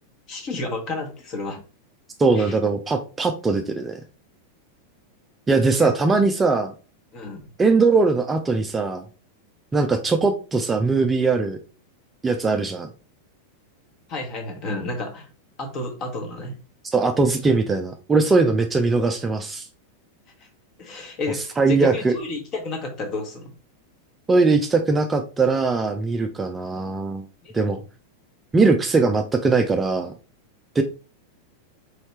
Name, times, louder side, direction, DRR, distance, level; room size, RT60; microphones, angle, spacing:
voice 1, 0.3-1.6 2.4-2.5 5.6-5.9 7.1-7.4 14.1-15.3 15.6-16.5 18.3-18.4 20.8-23.5 27.4-27.8, left 2 dB, 35° left, 5 dB, 1.1 m, -31 dB
voice 2, 2.2-4.0 5.5-6.7 7.6-9.0 9.7-11.6 12.2-12.9 16.8-19.7 21.6-22.1 24.3-27.3 27.5-27.8 28.5-30.1 30.8-30.9, right 3 dB, 15° right, 5 dB, 0.4 m, -20 dB
4.3 x 3.1 x 3.1 m, 0.34 s
figure-of-eight pair, 90°, 0 cm